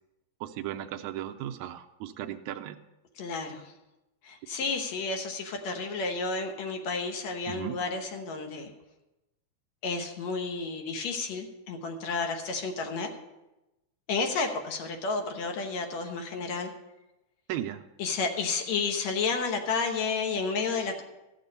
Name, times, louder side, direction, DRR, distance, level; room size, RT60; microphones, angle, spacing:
voice 1, 0.4-2.8 7.5-7.8 17.5-17.9, right 12 dB, 80° right, 6 dB, 1.9 m, -36 dB
voice 2, 3.2-3.7 4.2-8.7 9.8-13.1 14.1-16.7 18.0-21.0, left 4 dB, 70° left, 4 dB, 2.2 m, -31 dB
14.5 x 6.8 x 5.3 m, 0.98 s
omnidirectional pair, 3.4 m